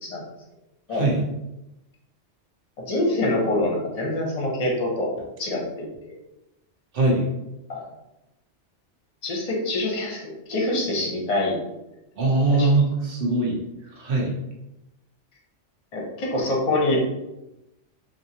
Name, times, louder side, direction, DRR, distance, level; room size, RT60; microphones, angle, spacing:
voice 1, 2.8-6.1 7.7-7.9 9.2-11.6 12.5-12.7 15.9-17.0, left 2 dB, 35° left, -2 dB, 0.8 m, -25 dB
voice 2, 6.9-7.3 12.2-13.6 13.9-14.3, right 2 dB, 55° right, -1 dB, 1.0 m, -21 dB
3.7 x 2.6 x 2.8 m, 0.95 s
omnidirectional pair, 1.2 m